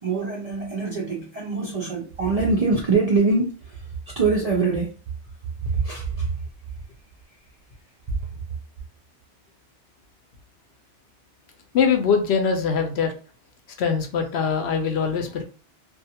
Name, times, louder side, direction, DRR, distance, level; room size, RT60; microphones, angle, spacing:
voice 1, 0.0-3.9 4.2-4.9 5.7-6.3, right 4 dB, 55° right, 0.4 m, -23 dB
voice 2, 11.7-13.1 13.8-15.4, left 6 dB, 70° left, 0.8 m, -22 dB
2.4 x 2.3 x 2.7 m
omnidirectional pair, 1.2 m